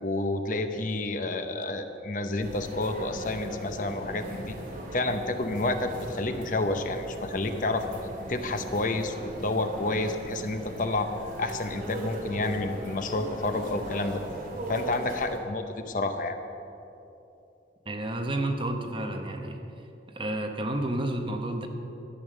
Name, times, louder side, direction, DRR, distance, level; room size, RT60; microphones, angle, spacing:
voice 1, 0.0-4.6 4.9-7.8 8.3-11.1 11.4-14.2 14.7-16.4, left 2 dB, 45° left, 7 dB, 0.7 m, -29 dB
sound 1, 2.4-15.4, right 1 dB, 50° right, 2.1 m, -39 dB
voice 2, 17.9-19.6 20.1-21.7, right 1 dB, 30° right, 4 dB, 0.9 m, -30 dB
12.5 x 8.5 x 6.4 m, 2.9 s
head